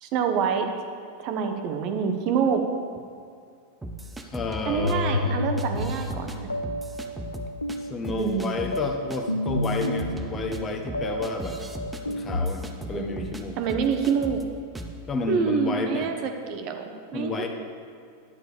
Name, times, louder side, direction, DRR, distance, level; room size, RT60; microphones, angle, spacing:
voice 1, 0.0-0.7 1.2-2.6 4.7-6.3 8.1-8.5 12.9-13.2 13.6-14.4 15.3-17.5, right 6 dB, 40° right, 5 dB, 0.8 m, -26 dB
sound 1, 3.8-4.9 5.6-6.4 6.6-7.8 8.0-8.8 9.1-9.2 9.5-13.4 13.7-14.4 14.8-15.0, right 1 dB, 10° right, 0.7 m, -37 dB
voice 2, 4.3-5.4 7.8-11.6 12.1-13.6 15.1-16.1 17.1-17.5, left 3 dB, 20° left, 4 dB, 0.9 m, -31 dB
sound 2, 4.8-12.5, left 1 dB, 80° left, 0.3 m, -31 dB
11.0 x 9.0 x 3.4 m, 2.4 s
figure-of-eight pair, 90°, 0 cm